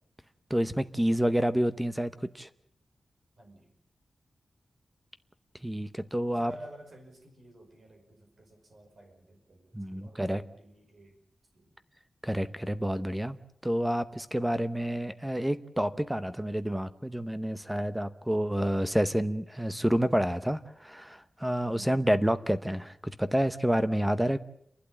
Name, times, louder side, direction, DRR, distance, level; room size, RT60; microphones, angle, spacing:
voice 1, 0.5-2.1 2.4-2.5 5.6-6.5 9.7-10.4 12.2-13.4 13.6-24.4, equal, 5° right, 12 dB, 0.8 m, -28 dB
voice 2, 3.4-3.7 6.3-11.2 11.5-11.8, right 1 dB, 50° right, 2 dB, 5.7 m, -51 dB
29.5 x 12.0 x 8.9 m, 0.75 s
wide cardioid pair, 180°, 0 cm